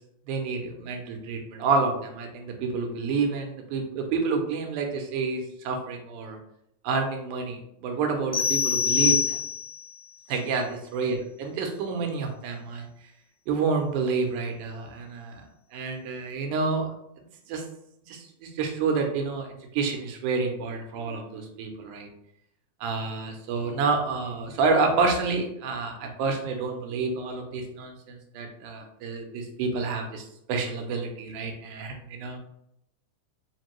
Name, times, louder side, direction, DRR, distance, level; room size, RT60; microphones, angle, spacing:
voice 1, 0.3-6.4 6.8-9.4 10.3-12.9 13.5-15.4 15.7-16.9 17.5-17.6 18.1-19.5 19.7-22.1 22.8-32.4, right 4 dB, 85° right, 3 dB, 2.2 m, -29 dB
sound 1, 8.3-9.9, left 7 dB, 25° left, 0.8 m, -25 dB
5.0 x 2.6 x 3.0 m, 0.77 s
omnidirectional pair, 3.5 m